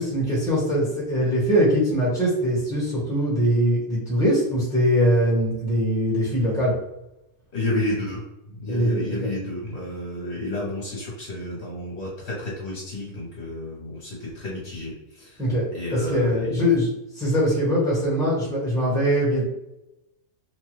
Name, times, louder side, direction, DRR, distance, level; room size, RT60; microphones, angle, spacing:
voice 1, 0.0-6.7 8.7-9.3 15.4-15.6 15.9-16.9 17.1-19.5, equal, 5° left, -6 dB, 1.0 m, -22 dB
voice 2, 7.5-8.2 8.5-15.4 15.7-16.7, left 1 dB, 55° left, -5 dB, 1.0 m, -31 dB
2.9 x 2.2 x 3.1 m, 0.90 s
omnidirectional pair, 1.5 m